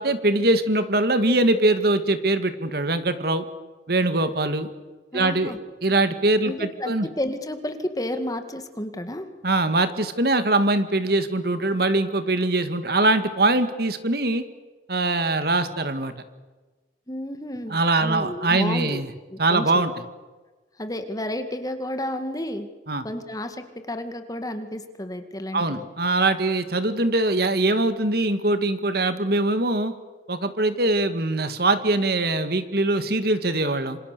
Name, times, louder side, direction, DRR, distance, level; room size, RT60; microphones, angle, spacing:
voice 1, 0.0-3.4 3.9-4.7 5.1-5.5 5.8-7.1 9.4-14.4 14.9-16.1 17.7-19.1 19.4-19.9 22.9-23.0 25.5-29.9 30.3-34.0, right 2 dB, 60° right, 10 dB, 1.9 m, -22 dB
voice 2, 5.1-5.6 6.4-9.3 17.1-19.0 19.3-19.8 20.8-22.7 23.0-25.9, left 1 dB, 20° left, 8 dB, 2.0 m, -31 dB
27.5 x 26.5 x 6.8 m, 1.3 s
head